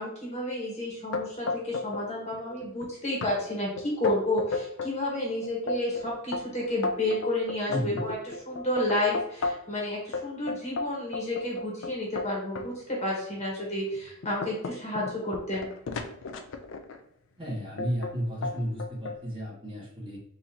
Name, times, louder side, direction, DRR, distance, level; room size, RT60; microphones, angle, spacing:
voice 1, 0.0-15.7, left 1 dB, 35° left, -4 dB, 1.3 m, -31 dB
sound 1, 1.1-2.1 2.3-2.9 3.2-3.3 3.8-5.0 5.4-9.8 10.1-12.7 13.3-13.4 13.9-17.0 17.8-18.2 18.4-19.2, left 3 dB, 65° left, 0.4 m, -34 dB
voice 2, 7.7-8.0 17.4-20.2, equal, 25° right, -6 dB, 1.4 m, -33 dB
3.9 x 2.7 x 2.8 m, 0.74 s
head